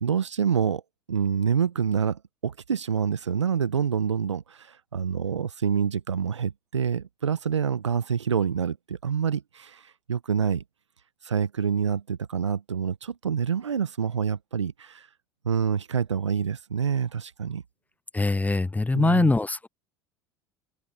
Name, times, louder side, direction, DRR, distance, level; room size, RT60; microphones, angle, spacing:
voice 1, 0.0-0.8 1.1-10.6 11.2-15.1 15.4-17.6 18.9-19.3, right 7 dB, 90° right, 0.9 m, -27 dB
voice 2, 18.1-19.7, left 2 dB, 10° left, 0.9 m, -23 dB
open air
hypercardioid pair, 75°, 15 cm